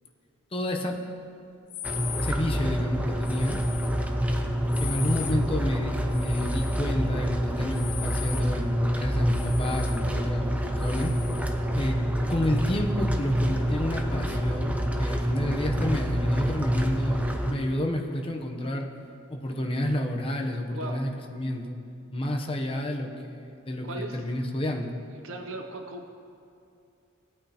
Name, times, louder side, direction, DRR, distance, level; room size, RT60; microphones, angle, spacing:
voice 1, 0.5-1.0 2.2-3.6 4.8-11.1 11.7-12.0 12.3-18.9 19.3-21.8 22.1-24.9, left 1 dB, 25° left, 2 dB, 0.8 m, -30 dB
sound 1, 1.7-2.4 3.2-3.9 4.7-5.4 6.1-6.8 7.7-8.5 9.3-10.0 10.8-11.5, left 10 dB, 60° left, 0.7 m, -39 dB
sound 2, 1.8-17.5, equal, 5° right, 0.6 m, -27 dB
voice 2, 20.7-21.1 23.8-24.2 25.2-26.3, right 2 dB, 75° right, 4 dB, 0.7 m, -38 dB
16.5 x 8.6 x 2.9 m, 2.5 s
head